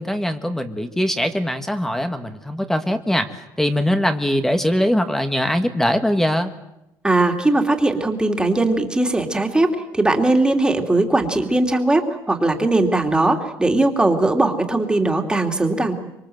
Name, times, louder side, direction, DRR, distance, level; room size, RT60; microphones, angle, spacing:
voice 1, 0.0-3.3 3.6-6.5, equal, 5° left, 7 dB, 1.5 m, -21 dB
voice 2, 7.0-15.9, right 2 dB, 10° right, 3 dB, 2.8 m, -19 dB
26.0 x 22.5 x 7.9 m, 0.89 s
cardioid pair, 125°, 8 cm